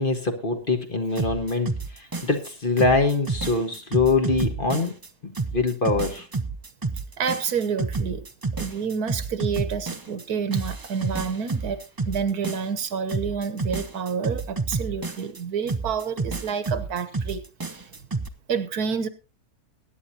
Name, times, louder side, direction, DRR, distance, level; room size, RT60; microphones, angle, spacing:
voice 1, 0.0-4.9 5.2-6.3, left 3 dB, 35° left, 5 dB, 1.6 m, -24 dB
sound 1, 1.1-2.5 2.8-5.1 5.3-10.2 10.5-12.8 13.1-15.4 15.7-18.3, right 3 dB, 25° right, 0.4 m, -30 dB
voice 2, 7.2-8.2 8.6-11.8 12.1-17.4 18.5-19.1, right 6 dB, 70° right, 13 dB, 1.6 m, -28 dB
21.5 x 9.6 x 2.8 m, 0.28 s
omnidirectional pair, 1.7 m